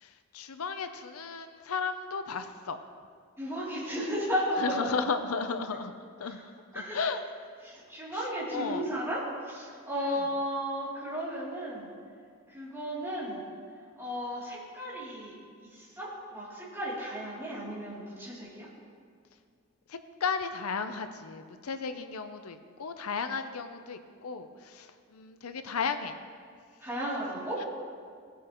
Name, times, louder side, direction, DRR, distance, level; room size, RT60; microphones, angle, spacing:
voice 1, 0.0-2.8 4.6-5.9 6.2-6.4 6.7-7.2 8.1-8.8 10.1-10.2 19.9-26.2 27.6-27.7, left 5 dB, 90° left, 9 dB, 0.6 m, -34 dB
voice 2, 3.4-4.9 6.2-6.4 6.7-7.0 7.6-11.9 12.5-13.4 14.0-15.3 15.6-18.7 26.8-27.6, equal, 10° right, -8 dB, 2.9 m, -34 dB
18.5 x 8.0 x 3.0 m, 2.1 s
head